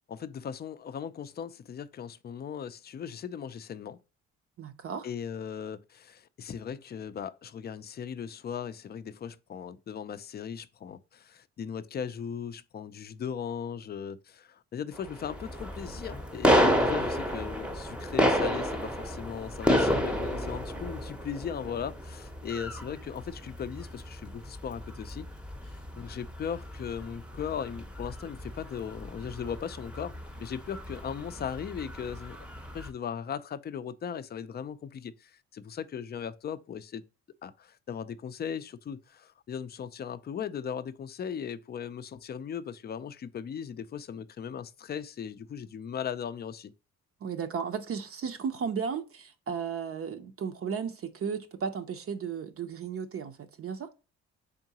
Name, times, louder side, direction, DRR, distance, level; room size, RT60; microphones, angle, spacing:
voice 1, 0.1-4.0 5.0-25.3 25.7-32.4 32.7-37.0 37.4-46.7, left 7 dB, 35° left, 0.4 m, -38 dB
voice 2, 4.6-5.1 47.2-53.9, right 6 dB, 50° right, 0.6 m, -34 dB
sound 1, 14.9-32.9, equal, 5° right, 0.7 m, -31 dB
3.7 x 3.7 x 2.8 m
cardioid pair, 90°, 30 cm